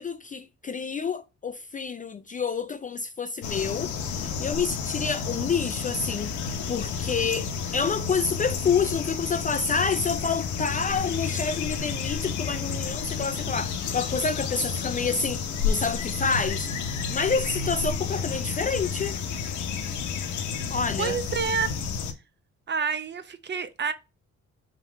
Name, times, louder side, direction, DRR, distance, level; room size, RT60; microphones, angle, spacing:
voice 1, 0.0-6.3 6.7-16.7 17.1-19.2 20.7-21.2, left 5 dB, 25° left, 0.3 m, -28 dB
sound 1, 3.4-22.1, left 6 dB, 75° left, 0.9 m, -31 dB
voice 2, 21.0-21.7 22.7-23.9, right 6 dB, 35° right, 0.7 m, -28 dB
4.5 x 3.8 x 3.0 m
cardioid pair, 90°, 30 cm